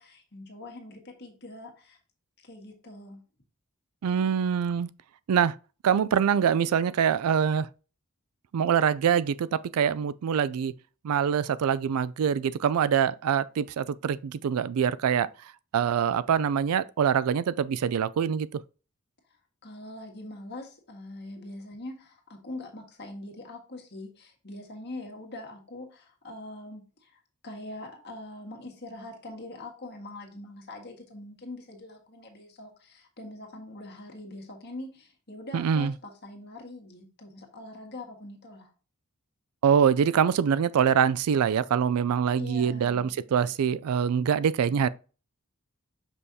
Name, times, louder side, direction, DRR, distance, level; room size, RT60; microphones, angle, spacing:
voice 1, 0.0-2.0 2.4-3.2 19.6-38.7 42.4-43.1, left 2 dB, 50° left, 1.7 m, -43 dB
voice 2, 4.0-4.9 5.3-5.5 5.8-7.7 8.5-10.7 11.0-15.3 15.7-18.6 35.5-35.9 39.6-44.9, right 7 dB, 80° right, 0.3 m, -24 dB
6.2 x 5.4 x 2.7 m
head